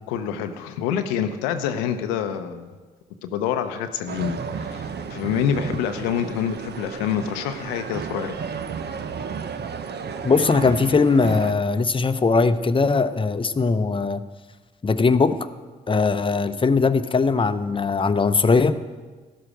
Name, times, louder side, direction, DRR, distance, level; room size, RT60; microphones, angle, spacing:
voice 1, 0.1-2.7 3.2-4.8 5.1-8.4, left 8 dB, 85° left, 8 dB, 0.7 m, -26 dB
sound 1, 4.1-11.5, right 6 dB, 55° right, 0.9 m, -33 dB
voice 2, 10.2-14.2 14.8-15.4 15.9-18.8, left 4 dB, 25° left, 11 dB, 0.7 m, -20 dB
13.0 x 11.0 x 4.9 m, 1.4 s
hypercardioid pair, 45°, 21 cm